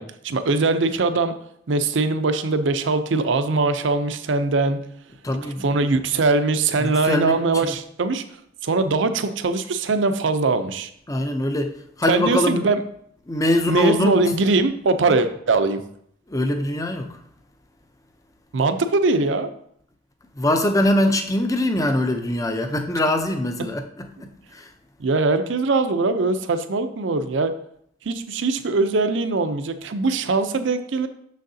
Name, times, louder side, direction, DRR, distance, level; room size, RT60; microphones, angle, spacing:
voice 1, 0.0-1.3 1.7-4.8 5.6-8.2 8.6-10.9 12.1-12.8 13.7-15.8 18.5-19.5 25.0-27.5 28.0-31.1, right 3 dB, 65° right, 10 dB, 0.5 m, -21 dB
voice 2, 5.2-5.7 6.8-7.7 11.1-12.7 13.3-14.5 15.1-15.2 16.3-17.2 20.4-24.7, left 1 dB, 15° left, 6 dB, 0.5 m, -23 dB
6.5 x 6.4 x 2.7 m, 0.69 s
head